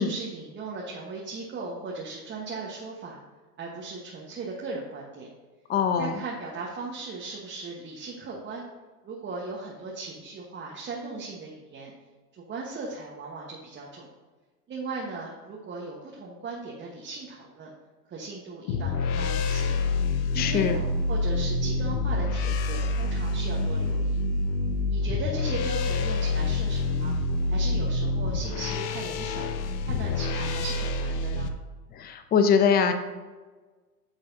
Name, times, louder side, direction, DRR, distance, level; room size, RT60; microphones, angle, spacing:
voice 1, 0.0-3.2 3.6-5.3 6.0-8.6 9.0-11.9 12.3-14.1 14.7-17.7 18.1-19.8 20.3-24.2 24.9-27.2 27.5-29.5 29.8-31.5, right 3 dB, 25° right, -3 dB, 1.3 m, -37 dB
voice 2, 5.7-6.1 20.3-20.8 31.9-32.9, left 6 dB, 20° left, 7 dB, 0.6 m, -23 dB
sound 1, 18.7-31.5, left 3 dB, 50° left, 0.9 m, -27 dB
9.9 x 6.3 x 2.8 m, 1.3 s
hypercardioid pair, 100°, 46 cm